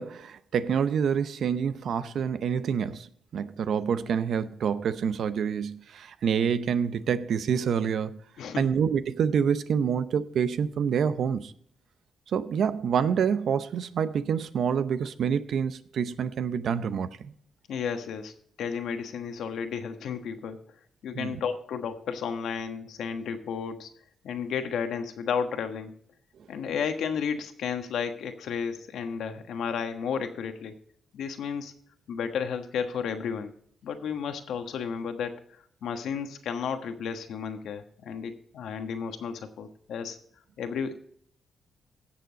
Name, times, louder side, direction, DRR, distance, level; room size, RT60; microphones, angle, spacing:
voice 1, 0.0-3.1 3.3-8.2 8.6-11.5 12.3-17.3 21.1-21.4, right 7 dB, 70° right, 0.7 m, -27 dB
voice 2, 8.4-8.7 17.7-20.6 21.0-23.9 24.2-25.9 26.5-30.7 31.1-31.7 32.1-33.5 33.8-40.2 40.6-40.9, left 6 dB, 80° left, 1.3 m, -33 dB
16.5 x 7.0 x 4.0 m
cardioid pair, 85°, 0 cm